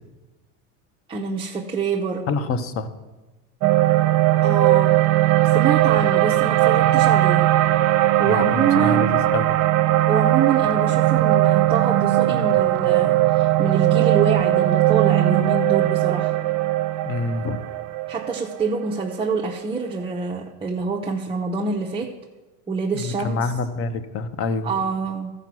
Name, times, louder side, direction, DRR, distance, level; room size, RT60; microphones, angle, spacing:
voice 1, 1.1-2.3 4.4-5.0 5.5-7.5 8.2-9.1 10.1-16.3 18.1-22.1 22.7-23.5 24.6-25.3, right 5 dB, 15° right, -2 dB, 0.6 m, -25 dB
voice 2, 2.3-2.9 8.2-9.5 17.1-17.6 22.9-24.7, left 3 dB, 35° left, 12 dB, 0.8 m, -26 dB
sound 1, 3.6-19.9, right 15 dB, 50° right, 0.8 m, -19 dB
13.5 x 5.1 x 6.1 m, 1.2 s
supercardioid pair, 125°, 38 cm